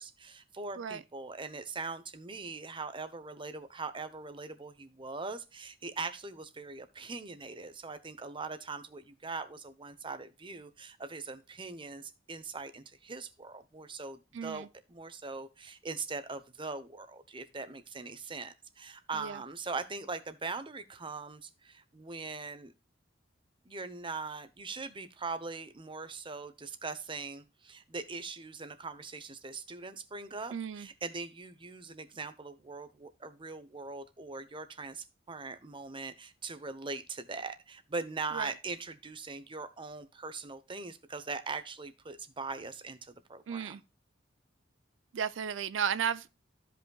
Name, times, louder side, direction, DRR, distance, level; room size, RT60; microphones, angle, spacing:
voice 1, 0.0-22.7 23.6-43.8, right 4 dB, 25° right, 0.8 m, -41 dB
voice 2, 14.3-14.7 19.1-19.4 30.5-30.9 38.3-38.5 43.5-43.8 45.1-46.4, right 7 dB, 90° right, 0.4 m, -34 dB
15.0 x 5.4 x 2.3 m
head